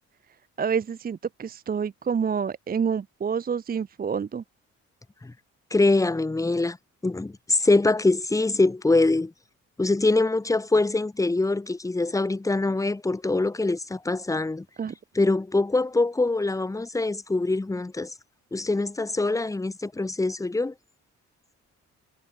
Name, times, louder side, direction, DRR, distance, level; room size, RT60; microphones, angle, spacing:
voice 1, 0.6-4.4 14.8-15.0, right 6 dB, 30° right, 0.7 m, -28 dB
voice 2, 5.7-6.8 7.0-9.3 9.8-14.6 15.2-18.1 18.5-20.7, left 2 dB, 10° left, 0.9 m, -24 dB
cardioid pair, 90°, 30 cm